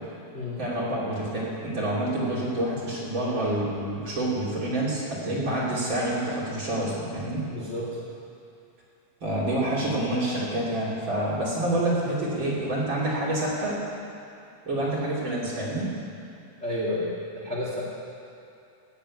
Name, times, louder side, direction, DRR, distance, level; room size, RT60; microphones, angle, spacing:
voice 1, 0.6-7.4 9.2-13.8 14.7-15.9, right 1 dB, 40° right, -7 dB, 3.6 m, -27 dB
voice 2, 7.5-8.0 16.6-17.8, left 1 dB, 25° left, -6 dB, 2.3 m, -31 dB
15.0 x 7.5 x 9.6 m, 2.7 s
omnidirectional pair, 3.5 m